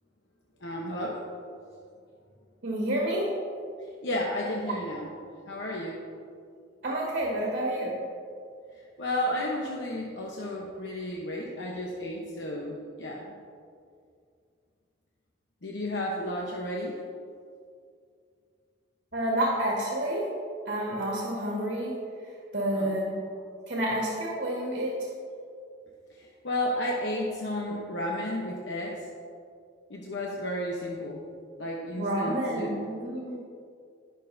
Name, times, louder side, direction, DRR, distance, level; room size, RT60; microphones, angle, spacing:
voice 1, 0.6-1.2 4.0-5.1 5.5-6.0 9.0-13.3 15.6-17.0 22.7-23.0 26.2-29.1 29.9-31.3 31.6-32.8, left 1 dB, 65° left, -2 dB, 1.0 m, -32 dB
voice 2, 2.6-3.3 6.8-7.9 19.1-20.3 20.7-21.9 22.5-23.2 23.7-25.0 32.0-33.4, right 1 dB, 55° right, -4 dB, 1.9 m, -29 dB
19.0 x 6.4 x 2.7 m, 2.3 s
head